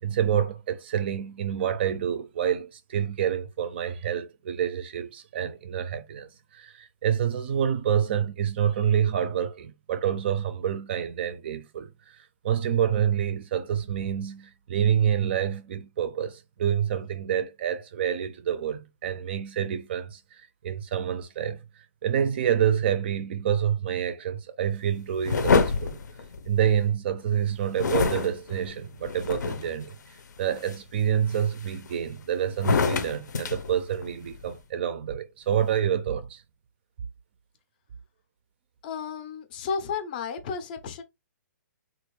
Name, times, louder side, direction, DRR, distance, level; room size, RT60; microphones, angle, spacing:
voice 1, 0.0-21.6 22.0-26.0 26.5-30.0 30.4-36.4, right 9 dB, 35° right, 0.4 m, -27 dB
sound 1, 25.2-26.9 27.8-29.8 30.4-30.8 31.3-32.1 32.5-34.4, left 4 dB, 75° left, 0.6 m, -27 dB
voice 2, 38.8-41.0, left 6 dB, 30° left, 0.5 m, -33 dB
3.4 x 2.5 x 3.1 m
hypercardioid pair, 165°, 10 cm